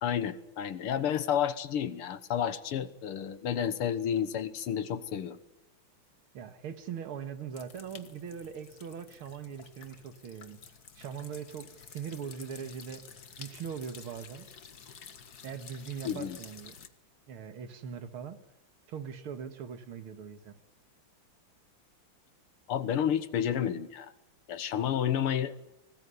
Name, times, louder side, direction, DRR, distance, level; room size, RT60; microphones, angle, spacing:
voice 1, 0.0-5.4 16.0-16.4 22.7-24.1 24.5-25.5, left 9 dB, 85° left, 14 dB, 2.2 m, -31 dB
voice 2, 6.3-10.6 11.0-13.0 13.4-14.5 15.4-16.8 17.3-18.4 18.9-20.5, right 7 dB, 75° right, 10 dB, 2.5 m, -41 dB
sound 1, 7.5-16.9, left 6 dB, 50° left, 1.9 m, -51 dB
25.5 x 19.5 x 9.7 m, 0.89 s
omnidirectional pair, 2.4 m